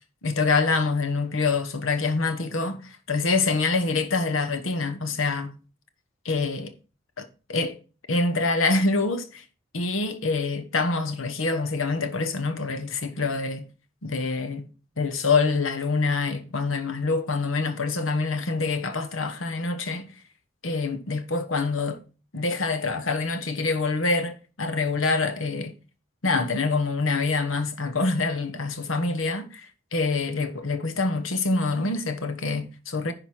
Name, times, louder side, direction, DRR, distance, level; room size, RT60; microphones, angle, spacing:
voice 1, 0.2-5.5 6.2-6.7 7.2-7.8 8.1-9.4 9.7-13.7 14.0-14.7 15.0-20.1 20.6-22.0 22.3-25.7 26.2-33.1, left 3 dB, 85° left, 1.2 m, -26 dB
10.5 x 4.0 x 6.1 m
head